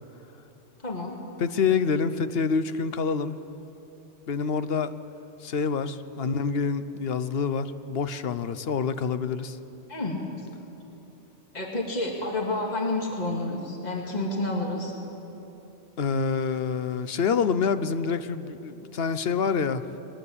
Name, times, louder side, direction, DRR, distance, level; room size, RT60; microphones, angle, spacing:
voice 1, 0.8-1.2 9.9-10.5 11.5-14.9, left 2 dB, 35° left, -1 dB, 2.4 m, -29 dB
voice 2, 1.4-3.4 4.3-4.9 5.4-9.6 16.0-19.8, left 5 dB, 60° left, 12 dB, 1.0 m, -27 dB
22.0 x 19.0 x 8.6 m, 3.0 s
omnidirectional pair, 1.2 m